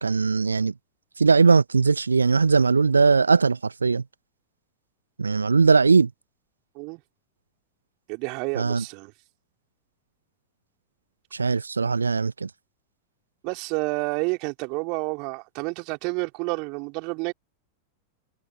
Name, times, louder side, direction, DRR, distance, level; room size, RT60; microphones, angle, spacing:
voice 1, 0.0-0.7 1.2-4.0 5.2-6.1 8.5-8.8 11.3-12.5, right 4 dB, 75° right, 1.4 m, -20 dB
voice 2, 8.1-9.1 13.4-17.3, right 32 dB, 45° right, 4.8 m, -29 dB
figure-of-eight pair, 90°, 0 cm